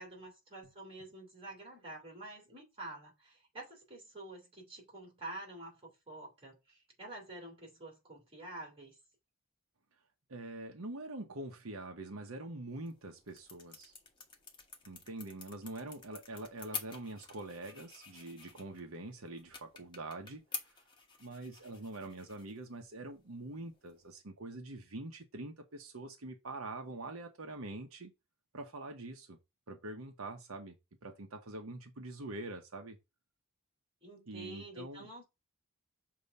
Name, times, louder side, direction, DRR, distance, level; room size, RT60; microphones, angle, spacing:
voice 1, 0.0-9.0 34.0-35.2, right 2 dB, 25° right, 3.3 m, -48 dB
voice 2, 10.3-13.9 14.9-20.7 21.2-28.1 28.5-29.4 29.7-30.7 31.0-33.0 34.3-35.2, right 2 dB, 80° right, 1.0 m, -45 dB
sound 1, 12.7-24.2, left 5 dB, 20° left, 1.2 m, -49 dB
6.8 x 2.9 x 5.3 m
head